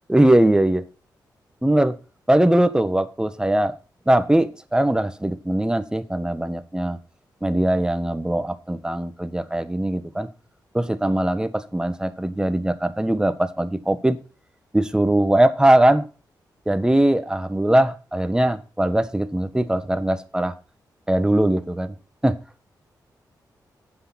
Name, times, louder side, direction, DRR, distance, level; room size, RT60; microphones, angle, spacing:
voice 1, 0.1-0.8 1.6-2.0 2.3-3.7 4.1-7.0 7.4-10.3 10.7-14.2 14.7-16.1 16.7-20.5 21.1-21.9 22.2-22.4, right 1 dB, 10° right, 1.4 m, -20 dB
9.7 x 8.6 x 5.9 m
cardioid pair, 70°, 8 cm